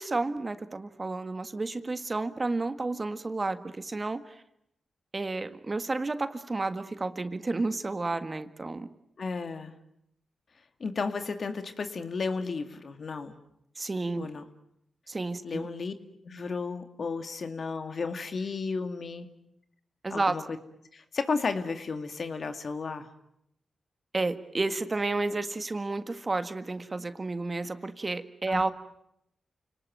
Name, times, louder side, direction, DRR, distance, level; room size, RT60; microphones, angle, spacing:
voice 1, 0.0-4.4 5.1-8.9 13.8-14.3 15.1-15.7 20.0-20.4 24.1-28.7, right 3 dB, 35° right, 11 dB, 1.7 m, -31 dB
voice 2, 9.2-9.7 10.8-13.4 14.2-14.4 15.4-15.9 16.2-19.3 20.1-20.4 20.9-23.1 28.5-28.7, left 4 dB, 60° left, 8 dB, 2.2 m, -33 dB
29.0 x 19.0 x 9.3 m, 0.79 s
supercardioid pair, 45°, 0 cm